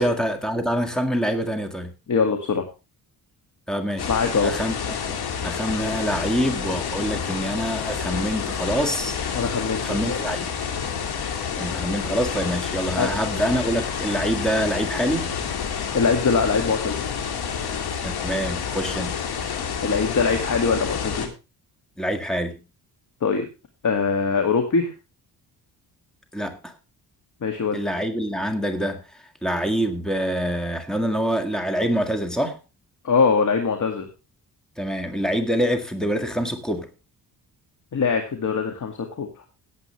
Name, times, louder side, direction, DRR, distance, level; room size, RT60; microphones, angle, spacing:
voice 1, 0.0-1.9 3.7-4.1 4.4-9.2 9.8-10.5 11.6-15.3 18.0-19.2 22.0-22.6 26.3-26.7 27.7-29.0 29.4-32.6 34.8-36.9, equal, ahead, 1.9 m, -25 dB
voice 2, 2.1-2.6 4.1-4.5 9.3-10.2 13.0-13.1 15.9-17.1 19.8-21.3 23.2-23.5 23.8-24.9 27.4-27.8 33.0-34.1 37.9-39.3, left 5 dB, 50° left, 2.2 m, -22 dB
sound 1, 4.0-21.3, left 7 dB, 70° left, 2.6 m, -29 dB
17.5 x 8.0 x 3.3 m
cardioid pair, 115°, 39 cm